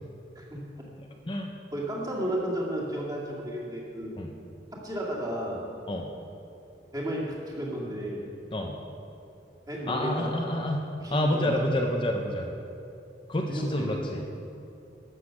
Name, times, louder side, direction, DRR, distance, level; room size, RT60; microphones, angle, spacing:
voice 1, 1.0-1.5 4.2-4.3 5.9-6.1 8.5-8.8 9.9-10.8 11.1-12.5 13.3-14.2, left 1 dB, 30° left, 2 dB, 0.6 m, -28 dB
voice 2, 1.7-4.1 4.8-5.6 6.9-8.3 9.7-10.4 11.0-11.7 13.5-14.2, right 1 dB, 20° right, -4 dB, 2.1 m, -33 dB
12.0 x 7.9 x 6.3 m, 2.7 s
head